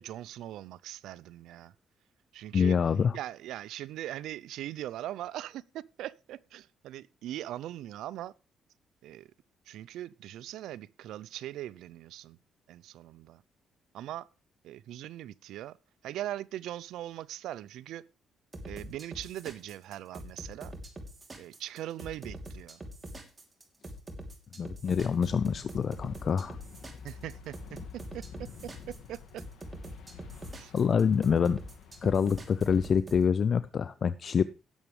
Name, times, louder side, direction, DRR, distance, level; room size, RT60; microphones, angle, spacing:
voice 1, 0.0-1.7 2.3-2.8 3.1-8.3 9.0-9.3 9.7-12.4 12.7-13.4 13.9-14.3 14.6-15.8 16.0-18.0 18.6-20.7 21.4-22.8 27.0-27.6 27.9-29.4 30.5-30.7, right 13 dB, 85° right, 0.5 m, -40 dB
voice 2, 2.5-3.2 24.6-26.6 30.7-31.6 32.0-34.4, left 6 dB, 50° left, 0.5 m, -26 dB
sound 1, 18.5-33.2, right 1 dB, 25° right, 3.0 m, -44 dB
sound 2, 24.8-33.0, left 6 dB, 75° left, 2.0 m, -49 dB
17.5 x 7.3 x 3.3 m
cardioid pair, 90°, 0 cm